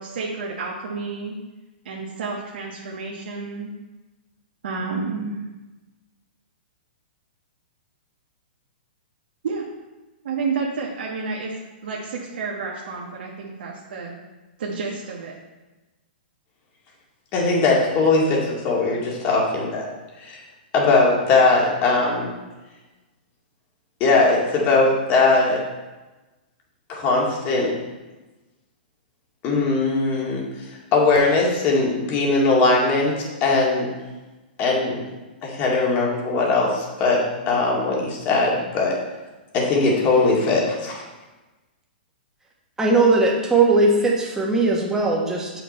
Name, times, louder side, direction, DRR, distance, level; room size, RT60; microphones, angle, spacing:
voice 1, 0.0-1.4 1.8-3.7 4.6-5.4 9.4-9.6 10.2-11.5 11.8-14.1 14.6-15.3, right 4 dB, 75° right, -3 dB, 1.3 m, -30 dB
voice 2, 17.3-19.9 20.2-20.4 20.7-22.3 24.0-25.6 26.9-27.8 29.4-30.4 30.9-33.9 34.6-35.0 35.4-38.9 39.5-41.0, left 3 dB, 35° left, -3 dB, 2.1 m, -20 dB
voice 3, 42.8-45.5, right 3 dB, 10° right, -2 dB, 1.4 m, -19 dB
7.6 x 5.8 x 4.3 m, 1.1 s
hypercardioid pair, 140°, 5 cm